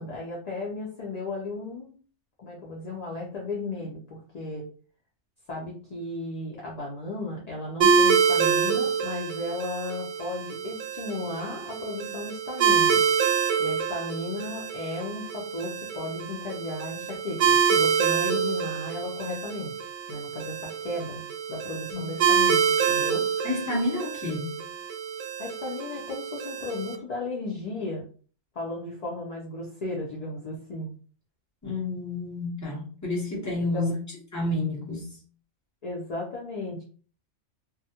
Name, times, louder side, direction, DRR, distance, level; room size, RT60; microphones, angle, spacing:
voice 1, 0.0-1.9 2.4-4.7 5.5-13.0 13.6-21.2 21.5-23.2 25.4-28.0 28.5-30.9 33.7-33.9 35.8-36.8, left 2 dB, 50° left, 0.5 m, -35 dB
sound 1, 7.8-27.0, right 7 dB, 85° right, 0.9 m, -26 dB
voice 2, 23.4-24.5 31.6-33.9 34.3-35.2, left 2 dB, 15° left, 0.7 m, -29 dB
2.3 x 2.1 x 2.8 m
omnidirectional pair, 1.3 m